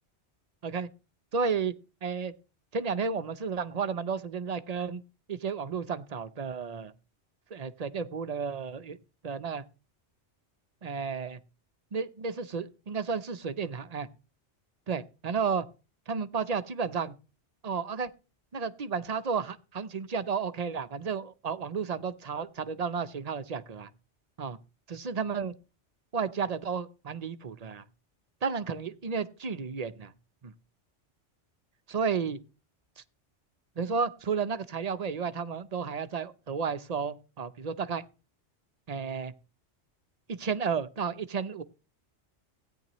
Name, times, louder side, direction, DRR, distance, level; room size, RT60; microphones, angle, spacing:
voice 1, 1.3-1.7 2.0-2.3 2.7-5.0 5.3-6.9 7.5-9.0 9.2-9.6 10.8-11.4 11.9-14.1 14.9-15.6 16.1-17.1 17.6-18.1 18.5-23.9 24.4-24.6 24.9-25.5 26.1-27.8 28.4-30.1 30.4-30.5 31.9-32.4 33.8-38.0 38.9-39.3 40.3-41.6, right 5 dB, 40° right, 0.7 m, -32 dB
16.5 x 9.7 x 3.0 m
omnidirectional pair, 1.2 m